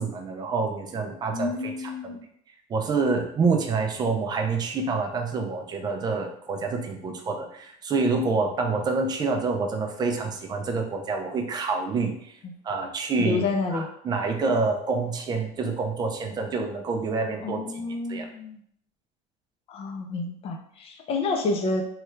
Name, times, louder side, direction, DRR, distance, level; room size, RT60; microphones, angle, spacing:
voice 1, 0.0-2.1 2.7-12.4 12.6-17.8 18.1-18.3, right 4 dB, 25° right, 4 dB, 0.4 m, -27 dB
voice 2, 1.3-2.2 12.4-12.5 13.2-13.9 17.4-18.6 19.7-21.8, left 3 dB, 35° left, 3 dB, 0.5 m, -29 dB
3.2 x 2.3 x 3.1 m, 0.67 s
cardioid pair, 150°, 17 cm